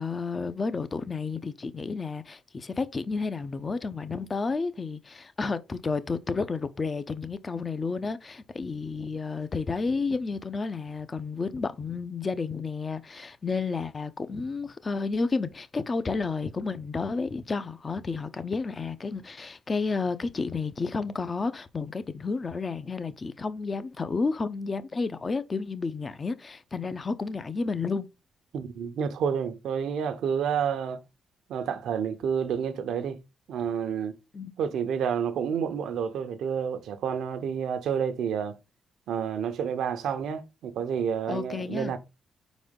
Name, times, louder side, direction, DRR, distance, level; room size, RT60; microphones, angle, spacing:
voice 1, 0.0-28.1 34.3-34.5 41.3-42.0, left 4 dB, 35° left, 0.8 m, -31 dB
voice 2, 28.5-31.0 31.5-33.2 33.5-34.1 34.6-38.6 39.1-42.0, right 7 dB, 75° right, 0.9 m, -29 dB
4.7 x 4.2 x 5.2 m
cardioid pair, 65°, 0 cm